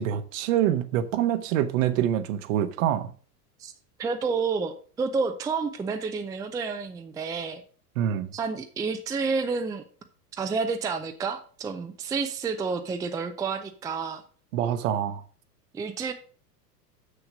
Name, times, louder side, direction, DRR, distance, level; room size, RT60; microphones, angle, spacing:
voice 1, 0.0-3.1 8.0-8.3 14.5-15.2, right 10 dB, 55° right, 1.0 m, -25 dB
voice 2, 4.0-7.6 8.3-9.8 10.4-14.2 15.7-16.1, right 5 dB, 10° right, 0.5 m, -30 dB
7.1 x 6.5 x 4.9 m
figure-of-eight pair, 90°, 48 cm